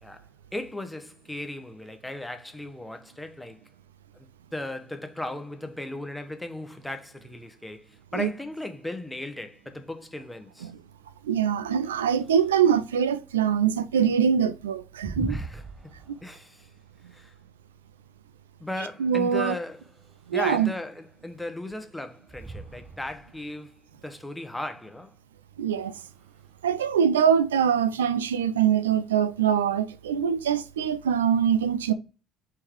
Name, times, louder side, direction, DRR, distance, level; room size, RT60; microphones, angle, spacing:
voice 1, 0.5-3.6 4.1-10.7 15.3-15.9 16.2-16.7 17.1-17.3 18.6-19.8 20.3-23.7 24.0-25.1, left 1 dB, 10° left, 0.8 m, -36 dB
sound 1, 9.0-28.1, right 3 dB, 25° right, 0.7 m, -44 dB
voice 2, 11.2-15.4 19.0-19.5 20.3-20.7 25.6-26.0 26.6-31.9, right 8 dB, 90° right, 0.3 m, -23 dB
3.5 x 3.3 x 4.5 m
hypercardioid pair, 60°, 0 cm